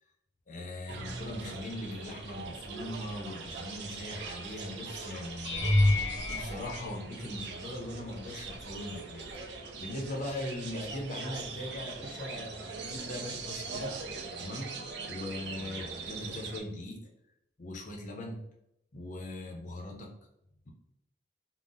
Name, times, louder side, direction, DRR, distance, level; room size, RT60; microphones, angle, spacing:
voice 1, 0.5-13.9 14.4-17.0 17.6-18.4 18.9-20.1, left 1 dB, 45° left, 1 dB, 0.6 m, -40 dB
sound 1, 0.9-16.6, right 4 dB, 65° right, 0.5 m, -42 dB
sound 2, 5.4-7.7 8.4-8.9 9.2-9.4 13.7-13.8, left 1 dB, 85° left, 0.9 m, -29 dB
3.8 x 2.0 x 2.5 m, 0.82 s
head